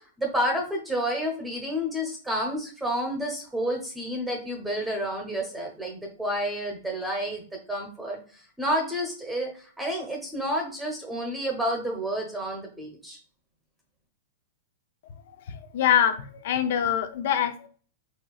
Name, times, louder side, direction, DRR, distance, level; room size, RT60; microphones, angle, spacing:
voice 1, 0.2-13.2, equal, 5° right, 1 dB, 0.9 m, -30 dB
voice 2, 15.5-16.2 16.4-17.7, left 9 dB, 60° left, 10 dB, 0.7 m, -24 dB
4.5 x 4.2 x 2.4 m, 0.42 s
hypercardioid pair, 140°, 0 cm